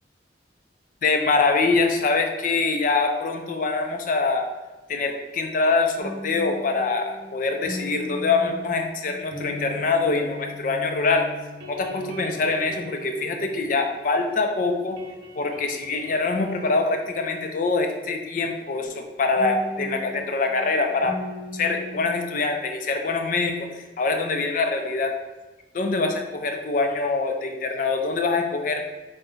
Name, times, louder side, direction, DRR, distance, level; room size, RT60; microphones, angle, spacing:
voice 1, 1.0-4.5 4.9-11.3 11.7-15.0 15.4-21.2 21.5-23.7 24.0-25.2 25.7-28.8, left 3 dB, 45° left, 4 dB, 0.4 m, -24 dB
sound 1, 6.0-14.5 14.7-18.2 19.4-22.0, left 1 dB, 75° right, 0.7 m, -38 dB
3.8 x 2.2 x 3.6 m, 1.2 s
head